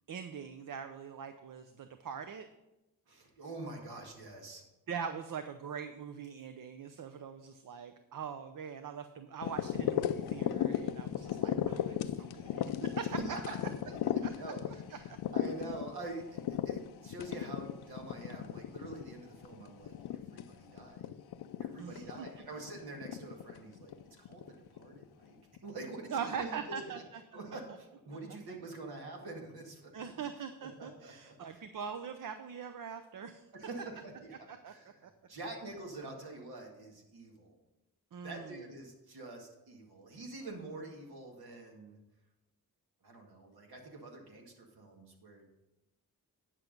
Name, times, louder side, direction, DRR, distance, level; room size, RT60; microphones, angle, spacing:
voice 1, 0.1-2.5 4.9-13.2 14.2-14.3 14.9-15.0 21.8-22.3 26.1-27.0 29.9-33.5 34.5-34.7 35.0-35.1 38.1-38.6, right 7 dB, 55° right, 9 dB, 0.7 m, -42 dB
voice 2, 3.1-4.6 13.2-21.1 21.6-25.4 25.6-26.8 27.3-30.1 30.6-31.6 33.5-37.5 38.2-42.0 43.0-45.4, right 2 dB, 75° right, 1 dB, 2.1 m, -46 dB
sound 1, 9.4-25.0 25.6-25.7, left 10 dB, 85° left, 0.5 m, -36 dB
9.9 x 6.0 x 5.3 m, 0.98 s
cardioid pair, 80°, 38 cm